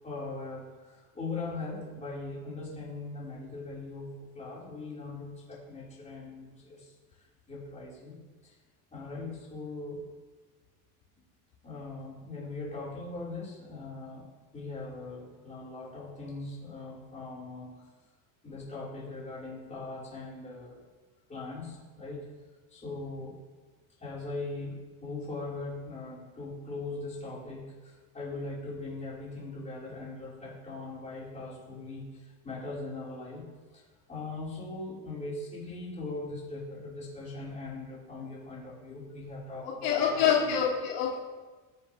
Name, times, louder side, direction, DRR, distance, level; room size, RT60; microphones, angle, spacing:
voice 1, 0.0-6.9 7.5-8.1 8.4-8.5 8.9-10.0 11.6-17.8 18.4-20.8 21.3-22.3 22.7-23.4 24.0-33.4 34.1-40.5, left 3 dB, 20° left, -7 dB, 4.9 m, -40 dB
voice 2, 39.6-41.1, left 7 dB, 65° left, -3 dB, 2.6 m, -26 dB
22.0 x 8.3 x 3.5 m, 1.3 s
cardioid pair, 150°, 39 cm